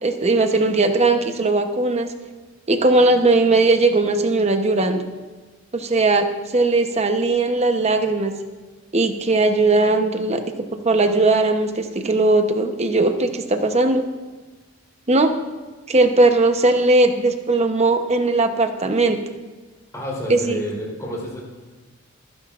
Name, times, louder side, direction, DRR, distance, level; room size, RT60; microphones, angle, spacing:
voice 1, 0.0-2.1 2.7-5.0 5.7-8.3 8.9-10.4 10.8-14.0 15.1-15.3 15.9-19.2 20.3-20.6, right 2 dB, 35° right, 6 dB, 0.9 m, -18 dB
voice 2, 19.9-21.4, equal, 15° left, -5 dB, 3.9 m, -29 dB
22.5 x 10.0 x 2.5 m, 1.3 s
head